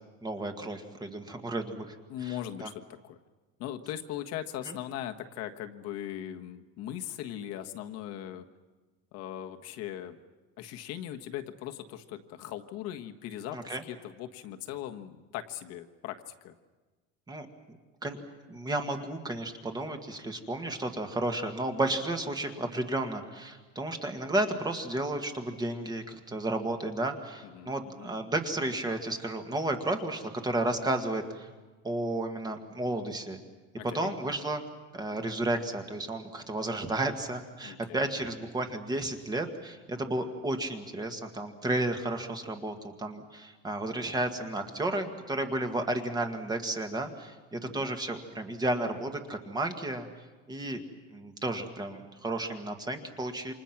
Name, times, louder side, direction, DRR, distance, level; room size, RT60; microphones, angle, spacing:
voice 1, 0.2-2.3 2.6-2.7 4.6-4.7 13.5-13.8 17.3-17.8 18.0-18.2 18.5-31.5 31.8-33.4 33.8-34.6 34.9-50.1 50.5-50.8 51.1-53.5, right 2 dB, 15° right, 5 dB, 1.7 m, -32 dB
voice 2, 2.1-3.2 3.6-8.5 9.1-10.2 10.6-16.5 27.4-28.1 33.8-34.1 37.6-38.1 47.6-47.9, left 11 dB, 55° left, 5 dB, 1.5 m, -39 dB
28.5 x 26.5 x 6.0 m, 1.3 s
cardioid pair, 160°, 30 cm